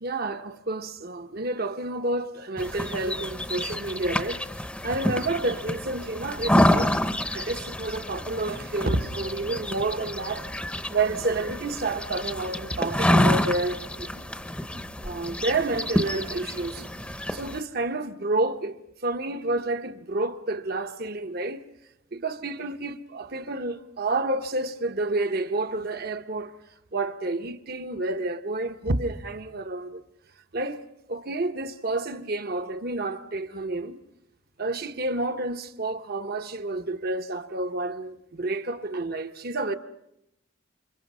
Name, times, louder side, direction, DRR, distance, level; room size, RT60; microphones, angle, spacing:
voice 1, 0.0-7.0 7.3-10.5 10.9-14.2 14.7-16.9 17.3-18.8 19.0-21.6 22.1-26.6 26.9-30.0 30.5-30.8 31.1-34.0 34.6-39.8, right 2 dB, 45° right, 1.0 m, -29 dB
sound 1, 2.6-17.6, left 1 dB, 5° left, 0.8 m, -28 dB
29.0 x 26.0 x 5.5 m
head